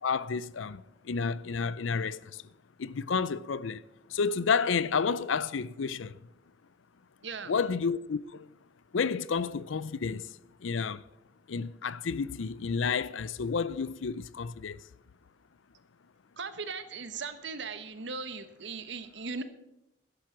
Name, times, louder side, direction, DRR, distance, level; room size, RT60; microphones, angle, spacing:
voice 1, 0.0-2.4 2.8-3.8 4.1-6.2 7.5-8.5 8.9-11.0 11.5-14.8, left 5 dB, 80° left, 0.5 m, -31 dB
voice 2, 7.2-7.5 16.4-19.4, right 4 dB, 65° right, 1.1 m, -38 dB
13.0 x 10.5 x 6.1 m
head